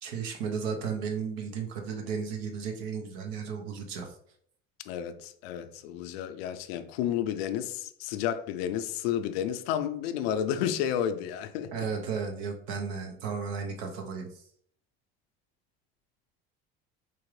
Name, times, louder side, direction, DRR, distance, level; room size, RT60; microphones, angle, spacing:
voice 1, 0.0-4.2 11.7-14.4, right 6 dB, 80° right, 0.8 m, -34 dB
voice 2, 4.9-11.9, left 10 dB, 85° left, 0.5 m, -31 dB
4.4 x 2.5 x 3.1 m
supercardioid pair, 80°, 30 cm